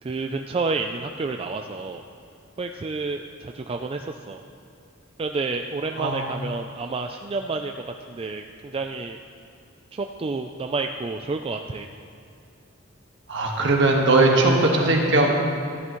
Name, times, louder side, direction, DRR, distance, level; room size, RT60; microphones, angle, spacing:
voice 1, 0.0-2.0 2.6-4.4 5.2-9.2 9.9-11.9, right 3 dB, 30° right, 4 dB, 0.3 m, -30 dB
voice 2, 13.3-15.4, right 2 dB, 60° right, 0 dB, 1.5 m, -19 dB
14.0 x 11.0 x 3.1 m, 2.5 s
head